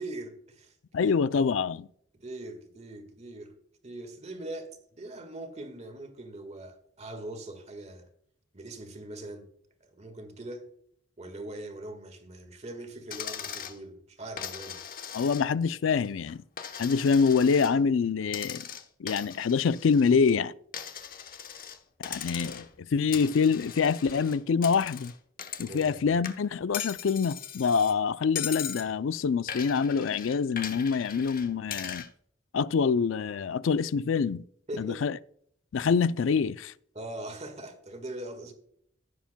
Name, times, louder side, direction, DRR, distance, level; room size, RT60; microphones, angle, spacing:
voice 1, 0.0-0.8 1.0-1.2 2.1-3.6 3.8-8.1 8.5-9.5 9.8-10.7 11.2-14.8 25.7-26.1 34.7-35.0 37.0-38.5, right 1 dB, 35° right, 1.6 m, -41 dB
voice 2, 0.9-1.9 15.1-16.4 16.8-18.6 19.0-20.5 22.0-25.1 25.6-32.1 32.5-34.4 34.8-35.2 35.7-36.7, left 5 dB, 85° left, 0.4 m, -26 dB
Coin (dropping), 13.1-13.8 14.4-15.7 16.0-17.7 18.3-20.3 20.7-21.8 22.0-22.8 23.1-26.0 26.2-27.9 28.3-28.9 29.5-32.1, left 8 dB, 45° left, 0.9 m, -39 dB
16.0 x 7.2 x 2.2 m
head